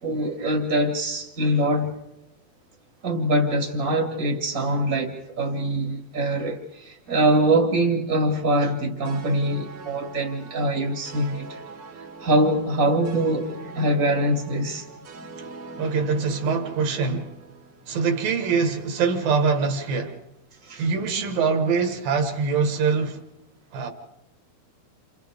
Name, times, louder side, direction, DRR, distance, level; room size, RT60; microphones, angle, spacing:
voice 1, 0.0-2.0 3.0-11.6 12.2-14.9 20.6-20.9, right 1 dB, 30° right, 1.6 m, -23 dB
sound 1, 9.0-18.4, right 3 dB, 50° right, 1.9 m, -43 dB
voice 2, 15.8-17.4 17.9-20.2 20.8-23.2 23.7-23.9, right 5 dB, 65° right, 3.1 m, -24 dB
29.0 x 28.5 x 3.6 m
omnidirectional pair, 4.5 m